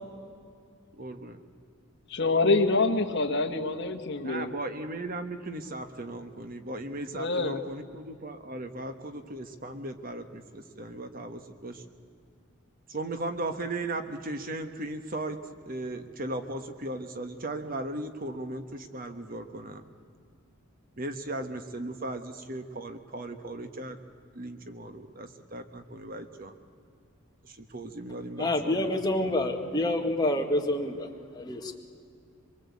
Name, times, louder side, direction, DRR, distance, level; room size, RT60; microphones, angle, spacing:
voice 1, 0.9-1.4 4.2-11.8 12.9-15.4 15.7-19.8 21.0-24.0 24.3-26.5 27.4-28.9, right 2 dB, 40° right, 8 dB, 1.3 m, -37 dB
voice 2, 2.1-4.5 7.1-7.6, left 3 dB, 50° left, 4 dB, 1.7 m, -26 dB
voice 3, 28.4-31.1 31.3-31.8, left 1 dB, 20° left, 2 dB, 1.9 m, -27 dB
25.0 x 23.0 x 8.4 m, 2.3 s
head